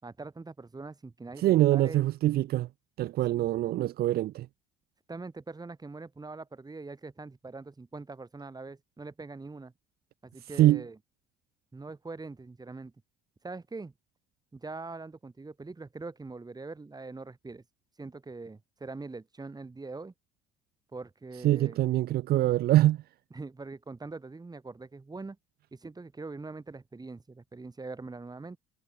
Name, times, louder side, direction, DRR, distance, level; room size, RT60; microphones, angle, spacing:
voice 1, 0.0-2.0 3.3-3.5 5.1-9.7 10.2-11.0 11.7-12.9 13.4-13.9 14.5-17.6 18.0-20.1 20.9-21.8 23.3-25.4 25.7-28.6, right 3 dB, 20° right, 3.9 m, -43 dB
voice 2, 1.4-2.7 3.0-4.5 10.6-10.8 21.4-23.0, right 15 dB, 60° right, 0.6 m, -24 dB
hypercardioid pair, 65°, 18 cm